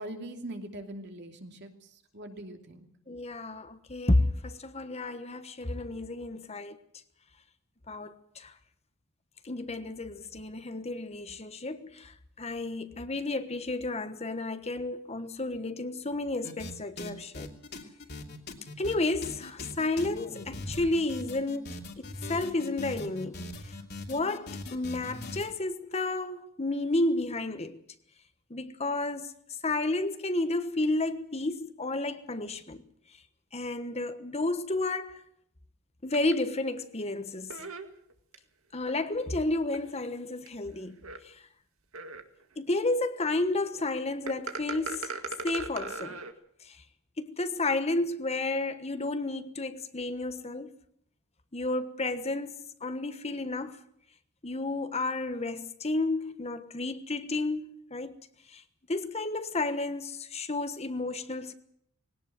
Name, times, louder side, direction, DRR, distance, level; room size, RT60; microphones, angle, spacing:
voice 1, 0.0-2.9, right 1 dB, 55° right, 2.9 m, -42 dB
voice 2, 3.1-6.8 7.9-8.5 9.4-17.5 18.8-23.5 24.1-27.8 28.5-29.3 29.6-32.8 33.5-35.2 36.0-37.7 38.7-41.4 42.6-46.2 46.6-46.8 47.2-50.7 51.5-53.8 54.4-58.2 58.5-58.6 58.9-61.5, left 2 dB, 30° left, 1.2 m, -31 dB
sound 1, 16.4-16.7 17.0-25.5, left 2 dB, 50° left, 3.0 m, -41 dB
sound 2, 36.1-36.3 37.5-38.4 38.8-38.9 39.7-39.8 40.5-40.6 41.0-41.2 41.9-42.4 44.3-46.3, right 4 dB, 85° right, 2.1 m, -37 dB
21.0 x 18.0 x 7.9 m
head